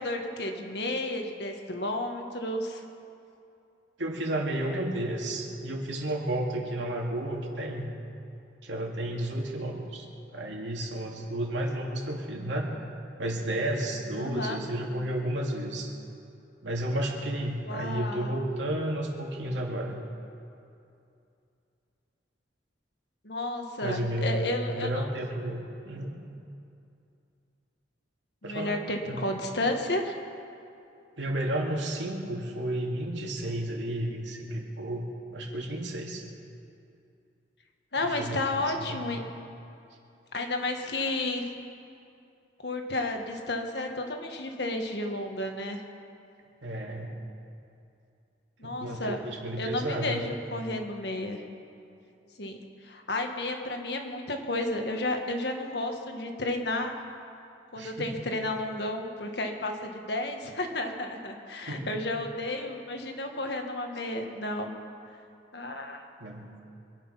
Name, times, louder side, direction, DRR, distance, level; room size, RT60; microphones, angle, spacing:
voice 1, 0.0-2.8 14.2-14.6 17.7-18.4 23.2-25.1 28.4-30.2 37.9-39.2 40.3-41.4 42.6-45.8 48.6-49.2 49.6-51.4 52.4-56.9 57.7-64.7 65.5-66.0, left 2 dB, 65° left, 4 dB, 1.6 m, -32 dB
voice 2, 4.0-7.9 8.6-10.1 10.3-12.7 13.2-15.9 16.6-20.0 23.8-26.2 28.4-28.8 29.1-29.3 31.2-36.2 38.0-39.3 46.6-47.2 48.6-50.3 57.7-58.1 61.7-61.9 66.2-66.5, right 1 dB, 80° right, -1 dB, 2.4 m, -32 dB
25.0 x 9.5 x 5.8 m, 2.6 s
head